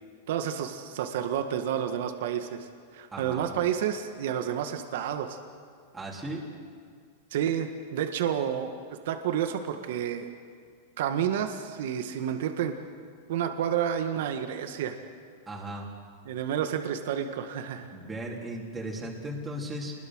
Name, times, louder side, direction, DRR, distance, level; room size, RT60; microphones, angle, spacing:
voice 1, 0.3-2.7 2.9-5.4 7.3-8.7 9.0-10.3 11.0-12.8 13.3-14.9 16.2-17.9, right 9 dB, 70° right, 6 dB, 1.8 m, -30 dB
voice 2, 3.1-3.4 5.9-6.4 15.5-15.9 17.9-19.9, right 1 dB, 10° right, -4 dB, 3.7 m, -36 dB
27.5 x 21.5 x 6.4 m, 2.1 s
supercardioid pair, 145°, 0 cm